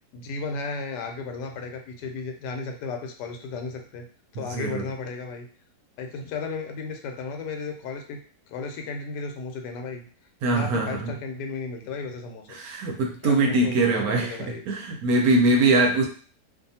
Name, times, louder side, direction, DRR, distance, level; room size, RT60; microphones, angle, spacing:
voice 1, 0.1-4.0 4.3-5.5 6.0-8.2 8.5-10.1 10.5-12.6 13.2-14.6, left 4 dB, 90° left, 4 dB, 1.2 m, -34 dB
voice 2, 4.4-4.8 10.4-11.1 12.5-14.4 14.7-16.1, right 2 dB, 70° right, 2 dB, 1.0 m, -22 dB
2.6 x 2.4 x 2.7 m, 0.42 s
omnidirectional pair, 1.7 m